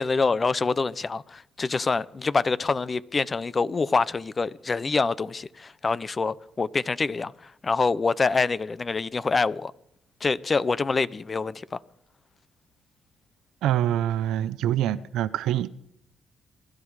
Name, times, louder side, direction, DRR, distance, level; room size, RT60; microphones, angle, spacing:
voice 1, 0.0-7.3 7.6-9.7 10.2-11.8, left 4 dB, 30° left, 0.7 m, -26 dB
voice 2, 13.6-15.7, right 11 dB, 85° right, 0.7 m, -25 dB
23.5 x 12.0 x 4.8 m
cardioid pair, 90°, 0 cm